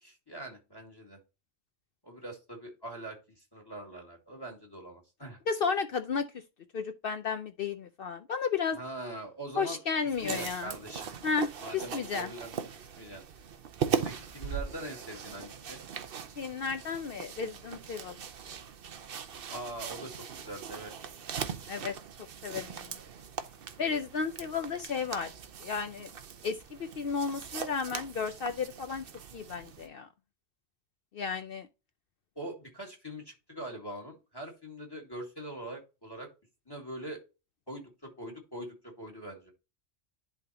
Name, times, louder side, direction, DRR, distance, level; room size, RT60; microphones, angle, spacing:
voice 1, 0.0-1.2 2.0-5.4 8.7-9.8 10.2-11.1 11.6-13.2 14.0-15.8 19.5-20.9 32.4-36.3 36.7-37.2 37.7-39.5, right 1 dB, 20° left, 1.9 m, -43 dB
voice 2, 5.5-6.3 6.7-8.8 9.6-10.7 11.2-12.3 16.4-18.2 21.7-21.9 22.4-23.0 23.8-25.3 25.6-26.1 26.4-29.0 29.3-30.1 31.1-31.7, left 5 dB, 60° left, 0.7 m, -33 dB
sound 1, 10.1-29.9, right 7 dB, 55° right, 0.9 m, -40 dB
11.0 x 3.9 x 2.8 m
omnidirectional pair, 1.2 m